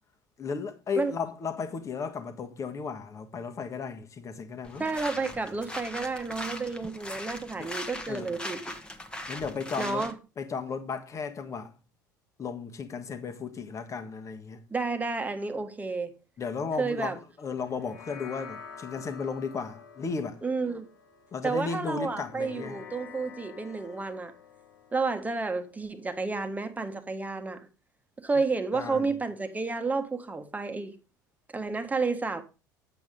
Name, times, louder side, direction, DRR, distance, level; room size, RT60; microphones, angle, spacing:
voice 1, 0.4-4.9 7.6-7.7 8.1-8.3 9.3-10.0 10.4-11.7 12.4-14.6 16.4-20.4 21.3-22.8 28.7-29.1, left 5 dB, 30° left, 1.6 m, -35 dB
sound 1, 4.6-10.1, left 1 dB, 10° left, 1.4 m, -40 dB
voice 2, 4.8-8.8 9.8-10.2 14.7-16.1 16.8-17.2 20.4-20.9 21.4-24.3 24.9-27.7 28.2-30.9 31.5-32.4, right 4 dB, 15° right, 1.5 m, -31 dB
sound 2, 17.6-26.3, left 6 dB, 75° left, 1.4 m, -49 dB
9.2 x 8.1 x 3.7 m
figure-of-eight pair, 65°, 10 cm